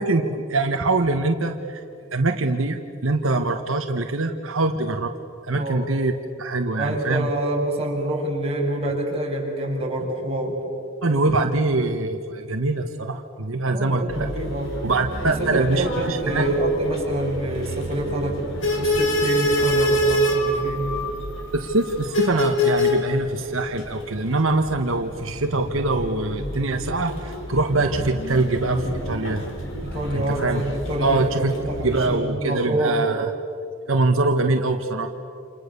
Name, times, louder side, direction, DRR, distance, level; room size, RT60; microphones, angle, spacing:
voice 1, 0.0-1.8 2.1-5.1 5.4-6.1 6.4-7.3 11.0-14.3 14.8-16.5 21.5-29.4 30.1-30.6 31.0-31.5 31.8-33.2 33.9-35.1, right 2 dB, 80° right, 4 dB, 1.4 m, -23 dB
voice 2, 5.5-5.9 6.8-10.6 13.7-14.7 15.2-18.4 18.8-20.9 29.8-33.0, right 1 dB, 30° right, -2 dB, 6.4 m, -26 dB
sound 1, 14.1-32.2, equal, 65° left, 4.0 m, -27 dB
29.0 x 28.0 x 6.9 m, 2.4 s
head